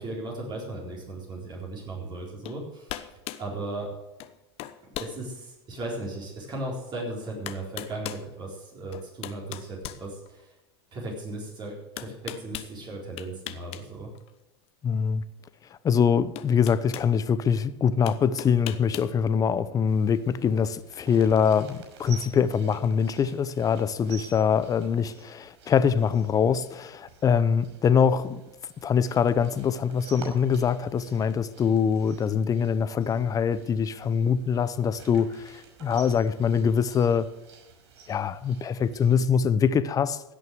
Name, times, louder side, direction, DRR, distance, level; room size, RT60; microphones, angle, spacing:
voice 1, 0.0-3.1 3.4-3.9 5.0-10.5 10.9-14.1, right 2 dB, 30° right, 4.1 m, -36 dB
sound 1, 2.4-2.6 2.9-3.5 4.2-4.3 4.6-5.2 5.7-5.8 6.9-7.0 7.5-8.3 8.9-10.6 12.0-12.7 13.2-13.8 14.1-14.3 15.7-15.8 16.4-17.1 18.1-19.1, left 13 dB, 45° left, 1.0 m, -38 dB
voice 2, 14.8-15.2 15.8-28.4 28.8-37.3 38.1-40.2, left 7 dB, 25° left, 0.8 m, -24 dB
sound 2, 19.9-39.3, right 5 dB, 70° right, 5.7 m, -50 dB
16.5 x 6.4 x 7.8 m
supercardioid pair, 120°, 14 cm